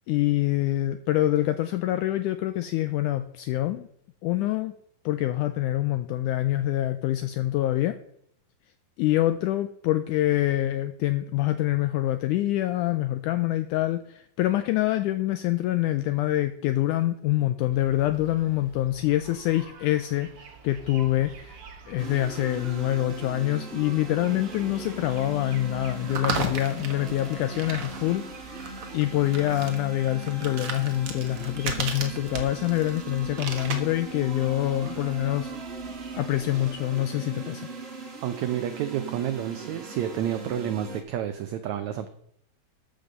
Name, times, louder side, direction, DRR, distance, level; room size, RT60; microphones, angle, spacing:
voice 1, 0.1-3.9 4.2-4.7 5.0-8.0 9.0-21.6 21.9-35.5 36.1-37.7, left 14 dB, 85° left, 10 dB, 1.8 m, -26 dB
sound 1, 17.7-36.7, right 5 dB, 55° right, 1.7 m, -39 dB
sound 2, 22.0-41.0, right 3 dB, 25° right, 1.5 m, -39 dB
voice 2, 38.2-42.1, right 10 dB, 85° right, 9 dB, 1.6 m, -30 dB
13.0 x 5.2 x 6.6 m, 0.68 s
omnidirectional pair, 4.1 m